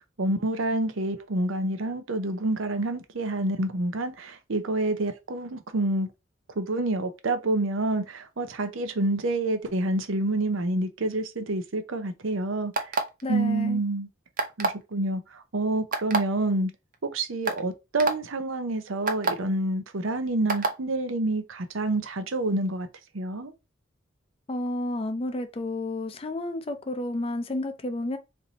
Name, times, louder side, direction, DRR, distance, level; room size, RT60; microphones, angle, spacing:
voice 1, 0.2-6.1 6.6-12.7 13.3-14.1 14.6-16.7 17.1-22.9 23.1-23.5, right 2 dB, 85° right, 0.7 m, -28 dB
sound 1, 12.7-13.2 14.4-14.8 15.9-16.2 16.9-17.0 17.5-17.6 18.0-18.1 19.1-19.3 20.5-20.7, right 3 dB, 45° right, 0.6 m, -25 dB
voice 2, 13.2-13.8 24.5-28.2, left 1 dB, 30° left, 0.5 m, -31 dB
3.3 x 2.7 x 4.0 m
head